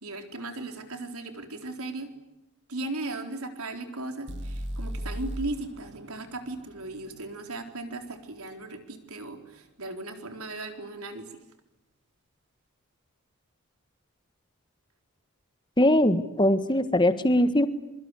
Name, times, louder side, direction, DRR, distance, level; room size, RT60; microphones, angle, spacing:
voice 1, 0.0-2.1 2.7-11.4, right 2 dB, 80° right, 6 dB, 4.1 m, -37 dB
sound 1, 4.3-8.2, equal, 55° right, 2.1 m, -38 dB
voice 2, 15.8-17.7, left 1 dB, 20° left, 11 dB, 1.5 m, -21 dB
27.0 x 24.5 x 8.3 m, 0.91 s
head